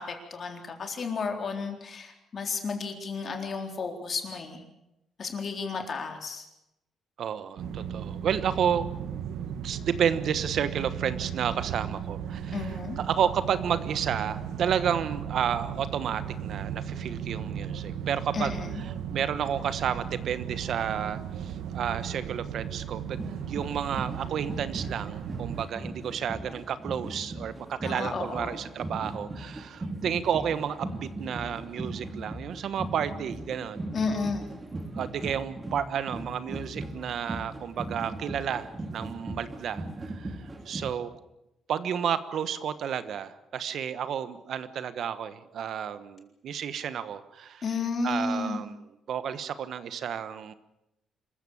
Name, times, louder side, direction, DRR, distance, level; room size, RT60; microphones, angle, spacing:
voice 1, 0.0-4.6 5.2-6.5 12.5-13.0 18.3-18.8 27.8-28.6 33.9-34.5 47.6-48.6, left 4 dB, 40° left, 4 dB, 3.9 m, -32 dB
voice 2, 7.2-8.8 9.4-33.8 34.9-40.4 40.6-41.1 41.7-47.6 48.0-48.7 49.1-50.5, right 8 dB, 60° right, 13 dB, 1.2 m, -31 dB
sound 1, 7.6-25.6, right 8 dB, 85° right, 1.6 m, -36 dB
sound 2, 23.2-40.9, right 2 dB, 20° right, 2.8 m, -38 dB
26.0 x 15.0 x 8.6 m, 0.87 s
cardioid pair, 130°, 0 cm